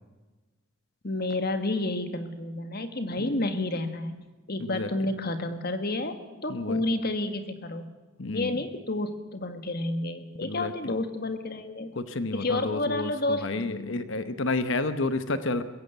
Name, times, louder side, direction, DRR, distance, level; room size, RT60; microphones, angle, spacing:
voice 1, 1.0-4.1 4.5-7.9 8.3-11.9 12.3-13.5, left 2 dB, 50° left, 8 dB, 1.9 m, -30 dB
voice 2, 6.5-6.8 8.2-8.6 10.4-10.7 11.9-15.6, left 2 dB, 65° left, 11 dB, 1.0 m, -30 dB
22.0 x 16.5 x 8.0 m, 1.2 s
head